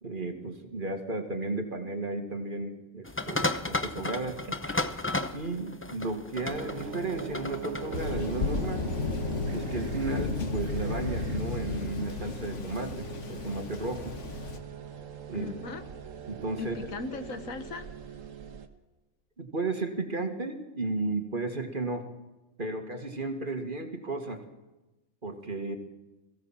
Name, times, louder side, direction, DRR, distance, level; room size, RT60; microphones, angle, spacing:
voice 1, 0.0-4.6 5.3-8.9 9.5-14.2 15.3-15.5 16.3-16.8 19.4-22.1 22.6-24.4 25.2-25.8, right 2 dB, 40° right, 5 dB, 2.1 m, -34 dB
sound 1, 3.0-8.1, left 2 dB, 10° left, 0.7 m, -33 dB
sound 2, 6.5-18.7, right 7 dB, 75° right, 1.6 m, -41 dB
Thunder, 7.9-14.6, left 4 dB, 60° left, 1.7 m, -33 dB
voice 2, 15.3-15.8 16.6-17.9, left 3 dB, 80° left, 9 dB, 1.7 m, -38 dB
22.0 x 16.0 x 7.4 m, 1.1 s
omnidirectional pair, 1.4 m